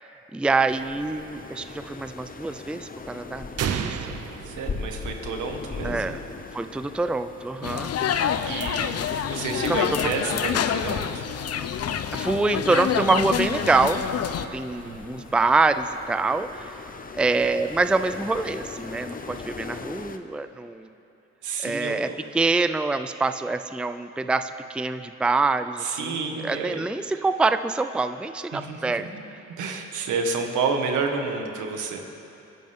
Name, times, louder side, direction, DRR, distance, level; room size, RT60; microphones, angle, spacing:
voice 1, 0.3-4.2 5.8-6.2 6.5-7.9 9.7-10.1 12.1-14.1 14.5-16.7 17.2-20.9 21.6-22.1 22.3-29.1, right 3 dB, 5° right, 10 dB, 0.4 m, -25 dB
sound 1, 0.7-20.2, left 4 dB, 30° left, 0.9 m, -40 dB
sound 2, 3.6-5.5, right 8 dB, 55° right, 0.8 m, -31 dB
voice 2, 4.4-6.1 8.1-8.9 9.2-11.2 14.8-15.2 21.4-22.2 25.8-26.8 28.5-29.1 29.6-32.0, right 4 dB, 80° right, 3 dB, 1.8 m, -30 dB
sound 3, 7.6-14.5, left 8 dB, 55° left, 0.8 m, -27 dB
28.5 x 10.5 x 3.7 m, 2.9 s
cardioid pair, 90°, 30 cm